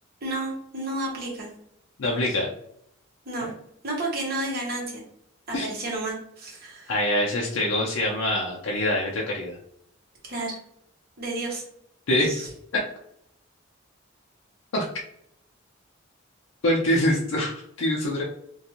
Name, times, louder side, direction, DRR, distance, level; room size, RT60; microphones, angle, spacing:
voice 1, 0.2-1.5 3.3-3.5 3.8-5.0 5.5-6.9 10.2-10.6 11.2-11.6 12.2-12.5, right 2 dB, 50° right, -2 dB, 0.9 m, -31 dB
voice 2, 2.0-2.5 3.4-3.5 5.5-5.7 6.9-9.6 12.1-12.4 14.7-14.8 16.6-18.2, left 1 dB, 75° left, -3 dB, 0.5 m, -24 dB
2.5 x 2.3 x 2.8 m, 0.73 s
head